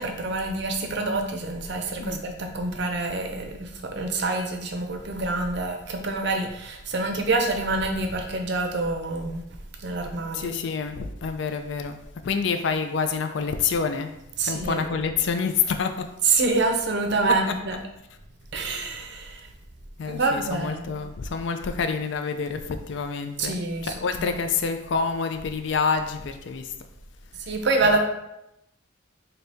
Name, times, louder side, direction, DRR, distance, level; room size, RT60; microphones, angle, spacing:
voice 1, 0.0-9.4 9.8-10.5 14.4-15.0 16.3-17.8 18.5-19.5 20.1-20.9 23.4-23.9 24.2-24.3 27.5-28.0, right 3 dB, 55° right, 4 dB, 0.5 m, -26 dB
voice 2, 10.3-12.0 12.2-16.1 17.3-17.6 20.0-23.5 23.8-26.7 27.8-28.0, left 5 dB, 60° left, 7 dB, 0.4 m, -27 dB
4.0 x 2.8 x 3.4 m, 0.85 s
head